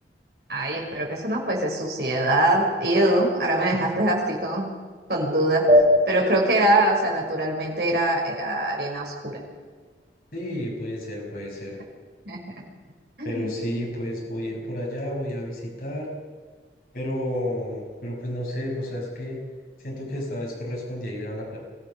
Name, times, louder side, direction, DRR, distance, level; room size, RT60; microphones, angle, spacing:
voice 1, 0.5-4.7 5.1-5.7 6.1-9.4 12.3-12.5 13.2-13.5, right 1 dB, 60° right, -1 dB, 5.7 m, -23 dB
sound 1, 5.7-8.6, equal, 35° right, 4.4 m, -23 dB
voice 2, 10.3-11.8 13.2-16.1 16.9-19.4 19.8-21.6, left 1 dB, 50° left, -2 dB, 6.1 m, -31 dB
24.5 x 15.5 x 7.0 m, 1.5 s
head